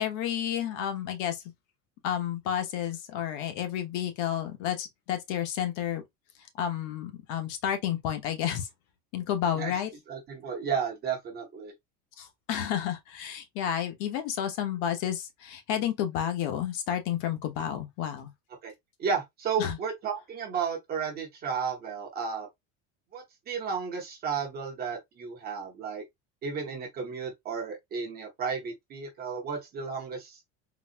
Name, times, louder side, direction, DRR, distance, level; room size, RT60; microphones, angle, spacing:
voice 1, 0.0-1.4 2.0-6.0 6.6-8.7 9.1-9.9 12.2-18.3 19.6-19.8, left 10 dB, 60° left, 0.9 m, -31 dB
voice 2, 10.1-11.7 18.6-18.7 19.0-22.5 23.1-26.0 26.4-30.4, right 6 dB, 30° right, 0.8 m, -33 dB
3.9 x 2.2 x 2.5 m
cardioid pair, 170°, 33 cm